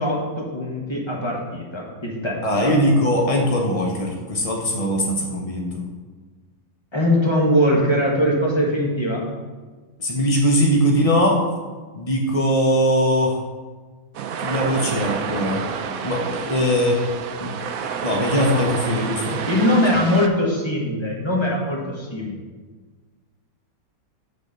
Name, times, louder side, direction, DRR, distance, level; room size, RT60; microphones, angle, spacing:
voice 1, 0.0-2.8 6.9-9.2 19.5-22.4, equal, 15° left, -2 dB, 1.3 m, -21 dB
voice 2, 2.4-5.8 10.0-11.4 12.0-13.4 14.4-15.6 16.0-17.0 17.4-17.5 18.0-19.4, equal, 65° left, 0 dB, 0.3 m, -20 dB
sound 1, 14.1-20.3, right 6 dB, 65° right, 0.8 m, -29 dB
6.7 x 4.4 x 6.6 m, 1.4 s
omnidirectional pair, 2.0 m